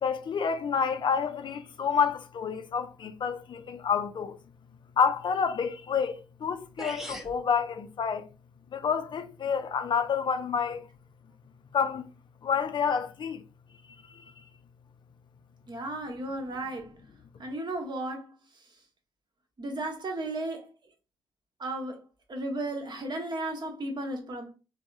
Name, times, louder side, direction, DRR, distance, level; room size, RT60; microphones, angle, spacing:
voice 1, 0.0-4.3 5.0-6.1 6.4-8.2 8.7-10.8 11.7-12.0 12.4-13.4, left 6 dB, 45° left, 0.4 m, -28 dB
sound 1, 6.4-6.5 6.8-7.4, equal, 5° right, 0.8 m, -38 dB
voice 2, 15.7-16.9 17.4-18.3 19.6-20.7 21.6-22.0 22.3-24.5, right 2 dB, 40° right, 1.0 m, -34 dB
3.5 x 2.0 x 2.5 m
hypercardioid pair, 40°, 11 cm